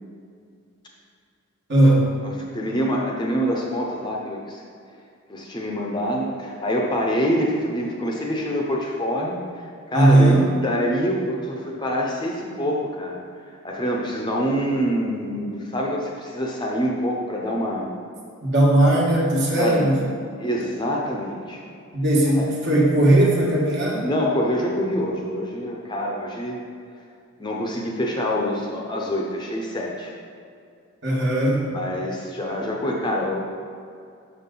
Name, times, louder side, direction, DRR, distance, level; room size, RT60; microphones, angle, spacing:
voice 1, 1.7-2.1 9.9-10.4 18.4-20.0 21.9-24.1 31.0-31.6, right 1 dB, 55° right, -4 dB, 1.4 m, -18 dB
voice 2, 2.2-4.6 5.3-9.4 9.9-13.2 13.6-17.9 19.6-20.0 20.4-21.6 22.3-22.4 24.0-26.6 27.4-30.1 31.7-33.4, equal, 20° left, -2 dB, 0.7 m, -25 dB
6.4 x 5.7 x 3.8 m, 2.4 s
head